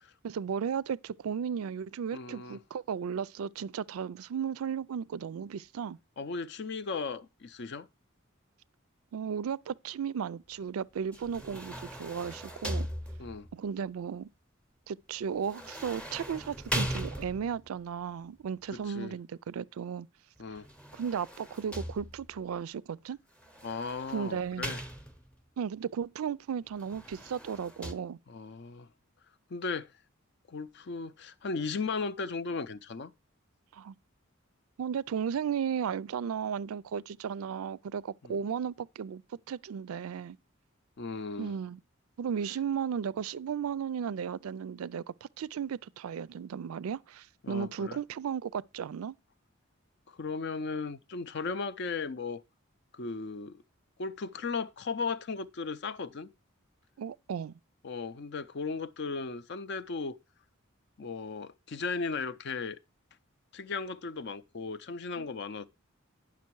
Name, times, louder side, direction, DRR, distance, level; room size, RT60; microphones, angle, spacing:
voice 1, 0.2-6.0 9.1-12.9 13.5-14.3 14.9-20.1 20.9-23.2 24.1-24.7 25.6-28.2 33.7-33.9 34.8-39.2 39.5-40.4 41.4-41.8 42.2-49.2 57.0-57.6 65.2-65.3, right 7 dB, 90° right, 0.4 m, -35 dB
voice 2, 2.1-2.6 6.2-7.9 13.2-13.5 18.9-19.1 20.4-20.7 23.6-24.8 28.3-28.9 29.5-29.9 30.5-33.1 38.2-38.3 41.0-41.5 47.4-48.0 50.1-52.4 52.9-53.6 54.0-56.3 57.8-60.2 61.0-62.8 63.5-65.7, left 4 dB, 55° left, 0.5 m, -36 dB
sound 1, 11.1-13.6 15.4-17.7 20.6-22.4 23.4-25.4 26.8-27.9, equal, 5° left, 0.7 m, -39 dB
9.5 x 6.0 x 4.5 m
head